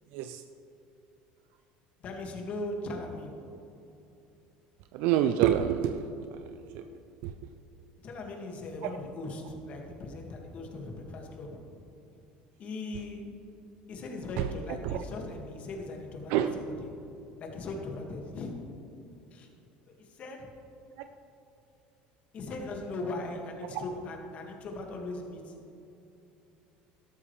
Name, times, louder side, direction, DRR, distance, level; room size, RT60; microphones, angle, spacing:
voice 1, 2.0-3.4 8.0-11.6 12.6-13.2 13.9-16.9 17.4-18.5 19.3-19.5 20.0-20.5 22.3-25.8, left 2 dB, 40° left, 1 dB, 2.0 m, -39 dB
voice 2, 4.9-6.1 6.7-6.8 7.2-7.3 14.8-15.0 16.3-16.5, right 11 dB, 70° right, 8 dB, 0.5 m, -26 dB
12.5 x 12.5 x 3.3 m, 2.8 s
supercardioid pair, 120°, 3 cm